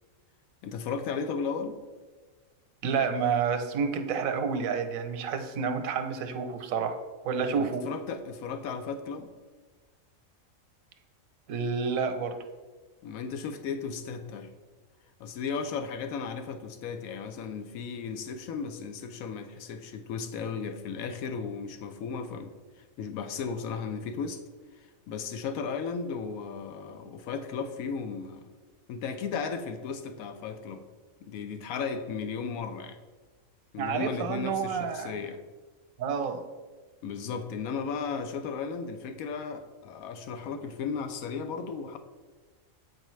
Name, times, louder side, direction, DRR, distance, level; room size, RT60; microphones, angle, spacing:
voice 1, 0.6-1.8 7.6-9.3 13.0-14.5 15.2-22.5 22.8-24.4 24.8-28.5 28.9-30.8 31.2-33.0 33.7-35.4 37.0-42.0, left 5 dB, 85° left, 8 dB, 1.1 m, -35 dB
voice 2, 2.8-7.0 7.2-7.9 11.5-12.4 33.8-35.1 36.0-36.4, right 6 dB, 85° right, 8 dB, 1.1 m, -29 dB
7.6 x 4.7 x 3.1 m, 1.3 s
omnidirectional pair, 1.4 m